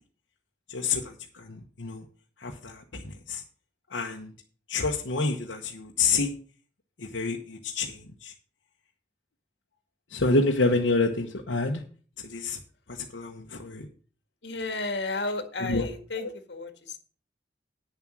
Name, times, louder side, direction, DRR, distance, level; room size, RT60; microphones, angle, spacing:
voice 1, 0.7-2.0 2.4-3.4 3.9-4.3 4.7-6.4 7.0-8.3 10.1-11.8 12.2-12.6 12.9-13.9 15.6-15.9 16.1-16.3, left 3 dB, 85° left, 1 dB, 1.1 m, -28 dB
voice 2, 14.4-17.0, left 3 dB, 70° left, 7 dB, 1.8 m, -33 dB
9.5 x 7.3 x 6.1 m, 0.41 s
head